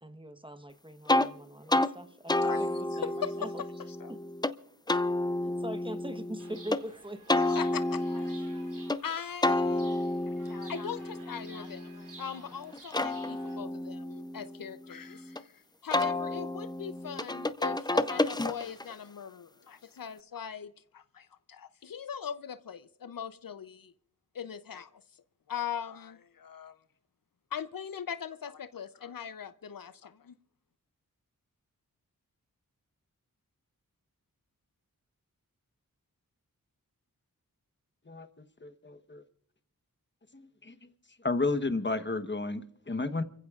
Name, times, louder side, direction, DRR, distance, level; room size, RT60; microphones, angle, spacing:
voice 1, 0.0-3.6 4.1-4.2 5.4-7.4 8.5-8.6, right 1 dB, 15° right, 1.0 m, -42 dB
sound 1, 1.1-1.3 1.7-1.9 2.3-4.5 4.9-6.8 7.3-9.0 9.4-12.3 12.7-15.4 15.9-18.9, left 2 dB, 10° left, 0.5 m, -30 dB
voice 2, 2.3-2.6 2.9-3.5 4.0-4.1 7.4-8.3 9.0-9.9 10.3-23.9 24.3-25.0 25.5-26.8 27.5-30.3, left 8 dB, 70° left, 0.6 m, -40 dB
Chirp tweet, 6.4-13.6, right 3 dB, 65° right, 3.4 m, -53 dB
voice 3, 38.6-39.2 40.3-40.7 41.2-43.2, left 3 dB, 30° left, 1.1 m, -32 dB
29.5 x 15.5 x 2.4 m
wide cardioid pair, 60°, 35 cm